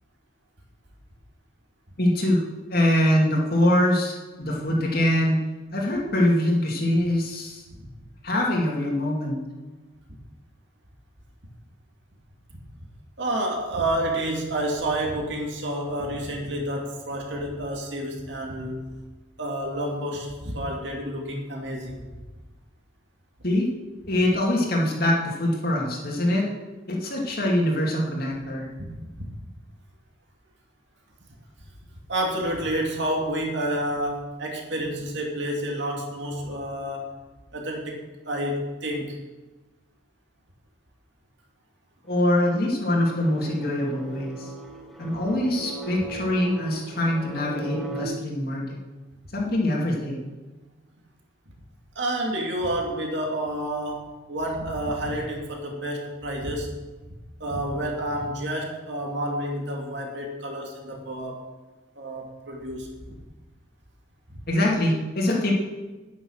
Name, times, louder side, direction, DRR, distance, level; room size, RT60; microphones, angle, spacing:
voice 1, 2.0-2.4 2.7-5.4 5.7-7.6 8.2-9.4 23.4-23.7 24.1-26.4 26.9-28.7 42.1-44.5 45.0-48.8 49.3-50.2 64.5-65.5, left 1 dB, 50° left, -2 dB, 2.5 m, -23 dB
voice 2, 13.2-18.9 19.4-22.0 28.8-29.2 32.1-37.2 37.5-39.2 52.0-56.7 57.4-61.5 62.0-62.9 64.3-64.4, right 1 dB, 60° right, 0 dB, 2.4 m, -29 dB
sound 1, 42.1-48.0, right 2 dB, ahead, 1.0 m, -38 dB
9.9 x 9.4 x 6.4 m, 1.2 s
head